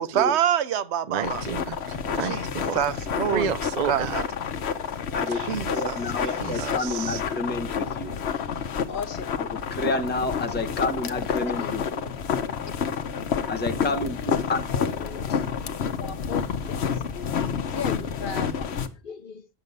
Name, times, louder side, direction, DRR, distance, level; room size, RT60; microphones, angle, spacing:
voice 1, 0.0-1.4 2.2-2.4 2.7-3.5 3.8-4.3 5.3-6.7, right 9 dB, 85° right, 1.0 m, -27 dB
voice 2, 1.1-2.8 3.3-4.2 6.4-7.2, right 7 dB, 50° right, 0.6 m, -31 dB
sound 1, 1.2-18.9, left 7 dB, 75° left, 1.1 m, -29 dB
voice 3, 5.7-8.2 9.7-12.1 13.5-14.6, left 2 dB, 10° left, 0.8 m, -29 dB
voice 4, 8.9-9.2 10.5-10.7 11.6-11.7 12.6-12.7 14.2-15.7 16.0-16.4 16.8-18.7 19.0-19.5, left 6 dB, 55° left, 0.9 m, -38 dB
9.5 x 6.9 x 5.2 m
omnidirectional pair, 1.1 m